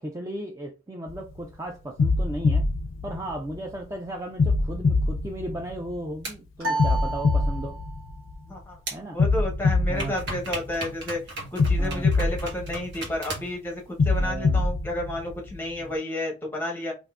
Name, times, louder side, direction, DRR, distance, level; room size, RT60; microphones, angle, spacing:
voice 1, 0.0-2.6 3.0-7.8 8.9-9.2 9.9-10.1 11.8-12.1 14.2-14.7 15.8-15.9, right 1 dB, 15° right, 0.3 m, -35 dB
sound 1, 1.1-1.4 2.0-3.8 4.4-6.2 6.8-8.6 9.2-11.0 11.6-13.4 14.0-15.8, left 3 dB, 80° left, 0.4 m, -24 dB
sound 2, 6.2-6.3 8.9-9.0 10.0-13.6, right 2 dB, 60° right, 1.2 m, -36 dB
sound 3, 6.6-8.1, right 2 dB, 90° right, 0.9 m, -31 dB
voice 2, 8.4-8.8 9.1-11.2 11.5-16.9, left 1 dB, 10° left, 0.8 m, -31 dB
3.5 x 2.5 x 2.3 m
head